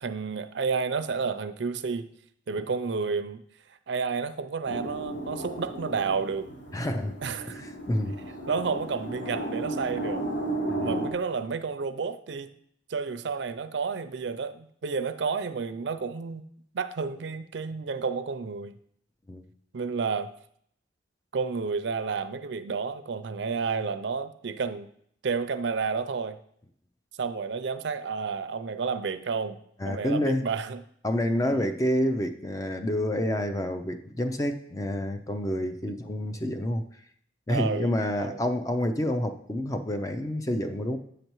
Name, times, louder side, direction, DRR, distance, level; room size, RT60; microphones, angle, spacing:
voice 1, 0.0-2.1 2.5-3.4 3.9-6.5 7.2-7.6 8.5-10.3 10.8-12.5 12.9-16.4 16.7-18.8 19.7-20.3 21.3-24.9 25.2-26.4 27.2-29.6 29.8-30.8 31.4-31.7 37.5-38.4, right 5 dB, 70° right, 0.5 m, -31 dB
sound 1, 4.6-11.1, right 1 dB, 90° left, 1.6 m, -34 dB
voice 2, 6.7-7.2 7.6-8.1 10.7-11.0 19.3-19.4 29.8-30.4 31.0-36.8 37.5-41.0, left 1 dB, 20° left, 0.4 m, -28 dB
8.0 x 6.6 x 3.0 m
head